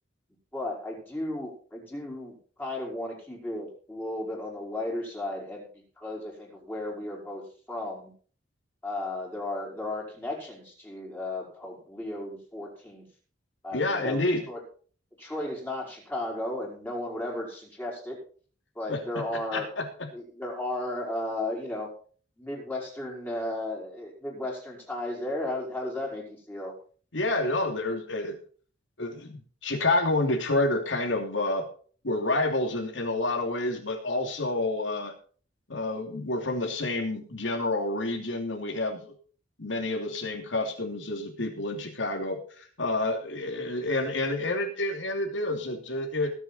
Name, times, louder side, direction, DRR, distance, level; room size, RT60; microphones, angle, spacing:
voice 1, 0.5-5.7 6.0-8.1 8.8-13.0 13.6-14.6 15.2-18.2 18.7-19.7 20.1-21.9 22.4-26.7, left 1 dB, 10° left, -2 dB, 4.9 m, -34 dB
voice 2, 13.7-14.5 18.9-19.0 19.5-19.8 27.1-28.4 29.0-31.7 32.0-35.1 35.7-39.1 39.6-46.3, left 2 dB, 80° left, 2 dB, 2.9 m, -29 dB
20.5 x 7.3 x 4.3 m, 0.43 s
head